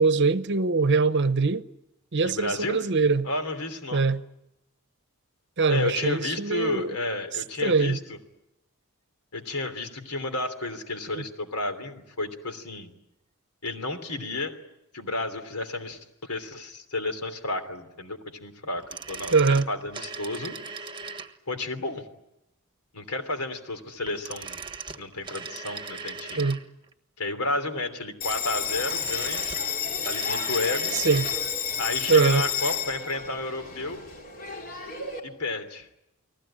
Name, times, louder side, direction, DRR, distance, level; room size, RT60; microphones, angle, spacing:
voice 1, 0.0-1.6 2.1-3.3 3.9-4.2 5.6-7.0 7.6-8.0 11.1-11.2 19.3-19.7 26.4-26.6 30.9-31.3 32.1-32.5, right 4 dB, 50° right, 0.9 m, -22 dB
voice 2, 2.2-2.8 3.2-4.0 5.7-8.0 9.3-12.9 13.6-14.5 14.9-18.8 19.1-20.5 21.5-22.1 22.9-24.6 25.0-26.5 27.2-29.5 30.0-31.0 31.8-34.0 35.2-35.9, left 2 dB, 90° left, 3.1 m, -32 dB
sound 1, 18.7-21.6 24.0-26.9 28.6-31.4 31.7-31.8, right 5 dB, 20° right, 1.4 m, -39 dB
Bell, 28.2-35.2, left 7 dB, 40° left, 4.0 m, -31 dB
30.0 x 20.0 x 8.8 m
head